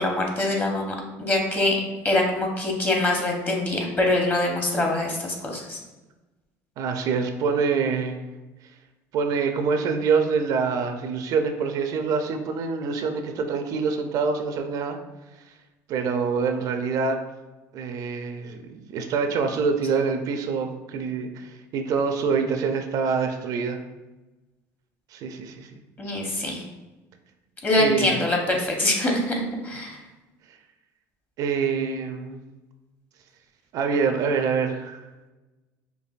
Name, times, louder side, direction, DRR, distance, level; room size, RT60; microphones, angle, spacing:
voice 1, 0.0-5.8 26.0-26.6 27.6-29.3 29.6-30.0, left 2 dB, 25° left, 1 dB, 0.9 m, -24 dB
voice 2, 6.8-8.2 9.1-15.0 15.9-17.2 17.7-23.8 25.1-25.7 27.8-28.1 31.4-32.4 33.7-35.0, right 5 dB, 60° right, 6 dB, 0.4 m, -25 dB
4.6 x 2.5 x 2.4 m, 1.1 s
supercardioid pair, 100°, 7 cm